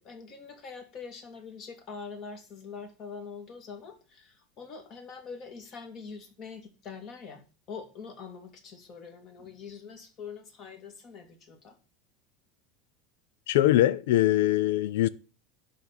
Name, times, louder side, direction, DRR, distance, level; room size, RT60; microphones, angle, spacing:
voice 1, 0.0-11.8, left 5 dB, 35° left, 2.4 m, -44 dB
voice 2, 13.5-15.1, left 14 dB, 85° left, 0.6 m, -22 dB
11.0 x 4.2 x 7.5 m
supercardioid pair, 165°, 0 cm